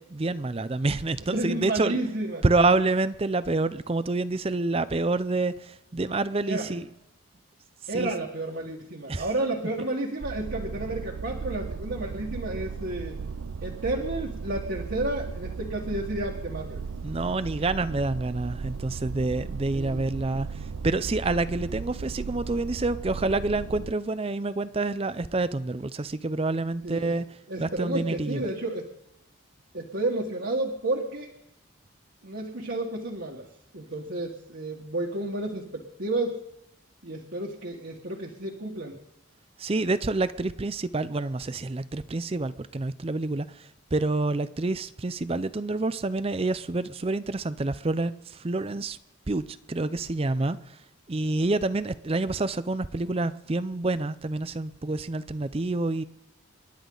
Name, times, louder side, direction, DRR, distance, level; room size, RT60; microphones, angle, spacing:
voice 1, 0.0-2.0 2.4-6.9 7.9-8.1 9.1-9.3 17.0-27.3 27.6-28.5 39.6-49.0 49.3-50.7 51.1-56.0, right 2 dB, 30° right, 0.5 m, -28 dB
voice 2, 1.3-2.4 6.5-6.7 7.9-13.2 13.6-16.8 19.7-20.1 26.8-27.2 27.5-28.9 29.7-31.3 32.2-33.5 33.7-36.4 37.0-39.0, right 2 dB, 60° right, 1.7 m, -31 dB
sound 1, 10.2-23.9, right 5 dB, 85° right, 0.5 m, -36 dB
28.0 x 11.5 x 3.9 m
head